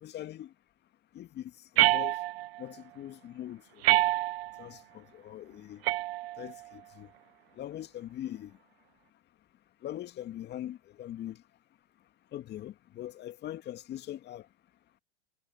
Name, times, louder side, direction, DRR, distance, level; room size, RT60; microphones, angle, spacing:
voice 1, 0.0-0.5 1.1-2.2 2.6-3.8 4.6-5.8 6.4-7.1 7.6-8.6 9.8-11.4 12.3-14.5, left 12 dB, 30° left, 2.1 m, -42 dB
sound 1, 1.8-2.6 3.8-4.6 5.8-6.7, right 17 dB, 60° right, 0.5 m, -27 dB
hypercardioid pair, 105°, 35 cm